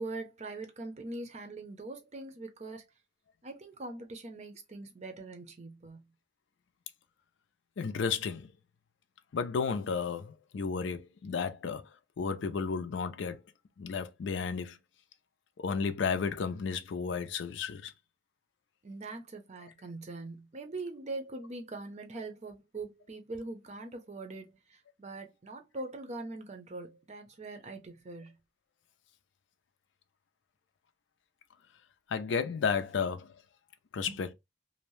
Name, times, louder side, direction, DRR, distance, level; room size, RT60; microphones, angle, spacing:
voice 1, 0.0-2.8 3.4-6.0 18.8-28.4 34.1-34.2, right 2 dB, 35° right, 0.6 m, -42 dB
voice 2, 7.8-8.5 9.3-11.9 12.2-13.4 13.8-14.8 15.6-17.9 32.1-33.3 33.9-34.3, left 5 dB, 75° left, 0.4 m, -33 dB
2.7 x 2.0 x 3.1 m
head